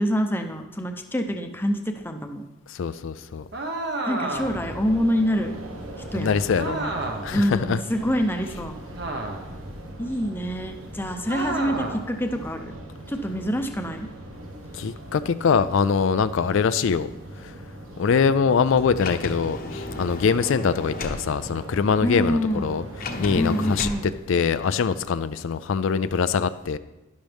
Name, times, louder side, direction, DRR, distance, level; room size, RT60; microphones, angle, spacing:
voice 1, 0.0-2.4 4.0-5.5 5.9-6.4 6.6-6.9 7.3-8.8 10.0-12.8 13.1-14.1 22.0-22.8 23.3-24.1, equal, 10° left, 5 dB, 0.7 m, -26 dB
voice 2, 2.7-3.4 6.1-6.8 7.2-7.8 14.7-17.1 17.4-17.5 18.0-23.9 24.3-26.8, left 6 dB, 65° left, 12 dB, 0.4 m, -23 dB
sound 1, 3.5-4.7 6.6-7.4 8.9-9.6 11.3-12.1, right 2 dB, 55° right, 1.3 m, -30 dB
sound 2, 4.3-24.1, right 1 dB, 85° right, 1.4 m, -40 dB
Sliding door, 19.0-21.2 23.0-24.0, left 2 dB, 40° left, 0.9 m, -33 dB
11.5 x 11.5 x 3.5 m, 1.1 s
head